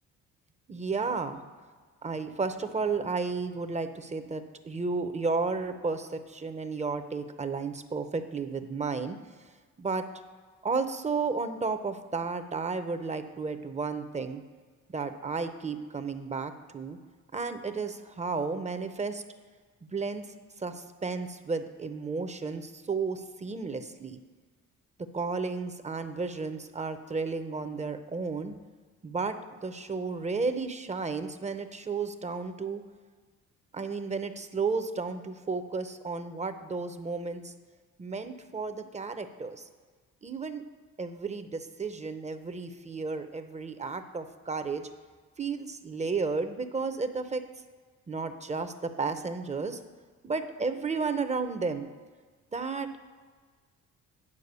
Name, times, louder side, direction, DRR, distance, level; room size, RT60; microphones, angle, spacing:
voice 1, 0.7-1.4 2.0-9.2 9.8-10.0 10.6-14.4 14.9-17.0 17.3-19.2 19.8-20.3 20.6-24.2 25.1-28.6 29.0-29.4 29.6-32.8 33.7-37.5 38.0-39.7 40.2-40.6 41.0-44.9 45.4-47.4 48.1-49.8 50.2-51.9 52.5-53.0, right 4 dB, 25° right, 9 dB, 0.7 m, -33 dB
9.7 x 4.6 x 6.8 m, 1.5 s
cardioid pair, 90°, 30 cm